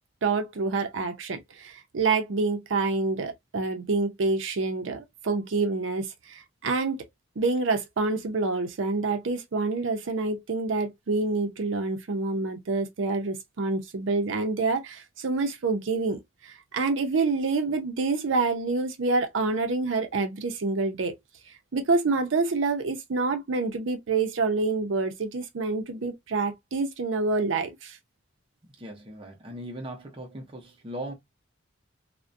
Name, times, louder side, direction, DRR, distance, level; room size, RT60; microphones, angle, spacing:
voice 1, 0.2-7.0 7.4-21.1 21.7-28.0, right 3 dB, 75° right, 0.5 m, -27 dB
voice 2, 28.8-31.1, right 1 dB, 30° right, 0.6 m, -39 dB
2.3 x 2.1 x 2.5 m
head